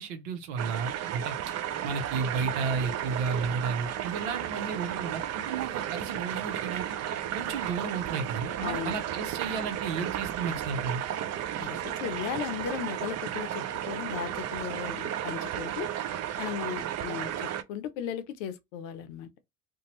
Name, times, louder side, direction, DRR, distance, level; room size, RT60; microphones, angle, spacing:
voice 1, 0.0-1.4 1.8-7.0 7.3-11.0, right 5 dB, 80° right, 0.8 m, -33 dB
sound 1, 0.6-17.6, right 10 dB, 40° right, 0.5 m, -34 dB
voice 2, 8.6-9.0 11.6-15.9 16.4-19.3, left 9 dB, 75° left, 0.7 m, -36 dB
2.6 x 2.2 x 3.0 m
hypercardioid pair, 70°, 38 cm